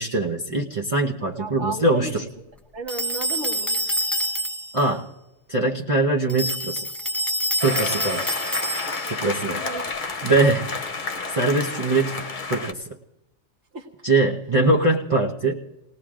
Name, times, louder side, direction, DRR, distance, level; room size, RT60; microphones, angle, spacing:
voice 1, 0.0-2.2 4.7-5.1 5.5-6.9 7.6-8.3 9.1-9.7 10.2-10.8 11.3-13.0 14.0-15.6, right 2 dB, 30° right, -3 dB, 1.0 m, -22 dB
voice 2, 1.4-2.1 2.7-3.8 9.2-9.8 13.7-13.9, right 3 dB, 75° right, 2 dB, 1.9 m, -33 dB
sound 1, 2.9-4.8 6.3-9.2, equal, ahead, 0.5 m, -27 dB
sound 2, 7.6-12.7, left 4 dB, 45° left, 1.0 m, -30 dB
29.5 x 19.0 x 2.5 m, 0.97 s
omnidirectional pair, 1.2 m